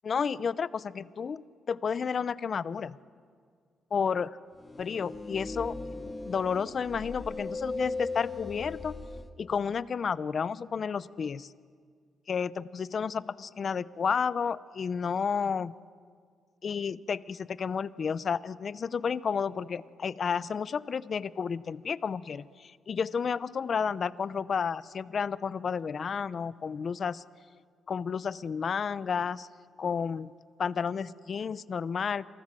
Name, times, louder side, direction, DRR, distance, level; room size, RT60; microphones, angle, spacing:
voice 1, 0.0-1.4 1.7-3.0 3.9-4.3 4.8-5.8 6.2-9.0 9.4-11.5 12.3-15.7 16.6-27.2 27.9-29.5 29.8-30.3 30.6-32.3, left 6 dB, 45° left, 18 dB, 0.7 m, -31 dB
sound 1, 4.6-9.3, left 3 dB, 20° left, 1.5 m, -38 dB
28.0 x 27.0 x 7.6 m, 2.1 s
cardioid pair, 135°, 0 cm